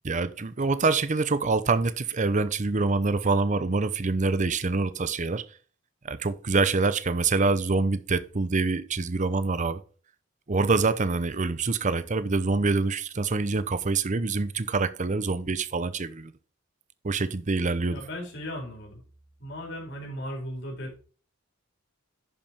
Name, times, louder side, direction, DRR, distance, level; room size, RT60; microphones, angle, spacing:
voice 1, 0.0-5.4 6.0-9.8 10.5-16.3 17.0-18.0, right 3 dB, 35° right, 0.7 m, -25 dB
voice 2, 17.9-19.0 19.4-21.0, equal, 60° left, 4.0 m, -37 dB
11.0 x 5.3 x 4.4 m
head